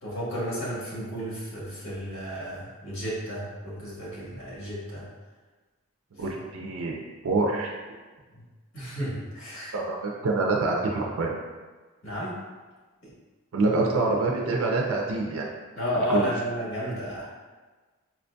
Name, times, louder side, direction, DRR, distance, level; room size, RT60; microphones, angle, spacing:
voice 1, 0.0-5.1 8.3-8.4 8.7-9.7 12.0-12.4 13.0-13.1 15.8-17.3, equal, 70° left, -7 dB, 1.2 m, -32 dB
voice 2, 6.2-6.9 7.2-7.7 9.7-11.3 13.5-15.5 16.1-16.3, right 3 dB, 80° right, -1 dB, 0.4 m, -26 dB
4.4 x 2.6 x 2.2 m, 1.3 s
head